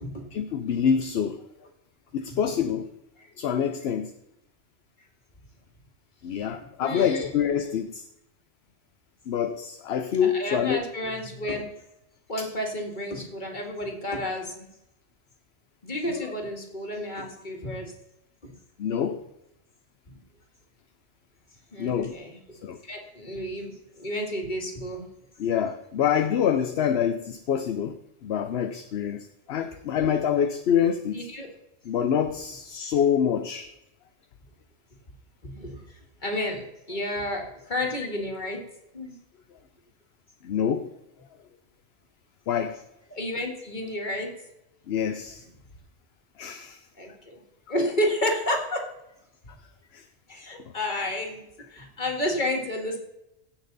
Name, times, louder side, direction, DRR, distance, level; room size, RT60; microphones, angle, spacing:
voice 1, 0.3-1.4 2.1-2.9 3.4-4.1 6.2-8.0 9.3-10.8 12.4-12.5 16.1-16.2 18.8-19.2 21.8-22.2 22.6-22.8 25.4-31.2 31.9-33.7 40.4-40.9 42.5-42.8 44.9-45.4 46.4-46.8 49.9-50.0, left 8 dB, 65° left, 8 dB, 0.9 m, -26 dB
voice 2, 6.8-7.3 10.2-11.6 12.3-14.7 15.8-17.9 18.4-18.5 20.1-20.2 21.7-22.6 22.8-25.1 31.1-31.5 35.4-38.7 38.9-39.2 43.1-44.3 47.0-47.4 47.7-48.9 50.3-51.5 51.7-53.0, left 1 dB, 40° left, 2 dB, 2.1 m, -31 dB
16.5 x 6.0 x 4.0 m, 0.85 s
omnidirectional pair, 1.2 m